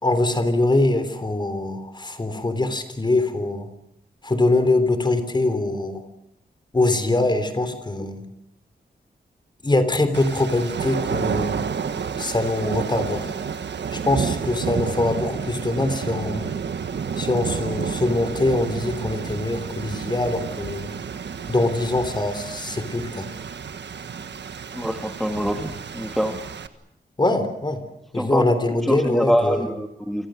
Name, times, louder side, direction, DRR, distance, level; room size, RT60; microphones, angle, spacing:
voice 1, 0.0-3.7 4.2-6.0 6.7-8.2 9.6-11.6 12.2-13.3 13.9-16.5 17.2-20.9 21.5-23.3 27.2-27.8 28.1-29.7, left 2 dB, 25° left, 10 dB, 3.5 m, -23 dB
sound 1, 10.1-26.7, right 6 dB, 80° right, 1.5 m, -30 dB
voice 2, 24.7-26.4 28.1-28.4 28.8-30.3, equal, ahead, 4 dB, 1.8 m, -24 dB
29.5 x 25.0 x 6.4 m, 0.78 s
wide cardioid pair, 135°, 18 cm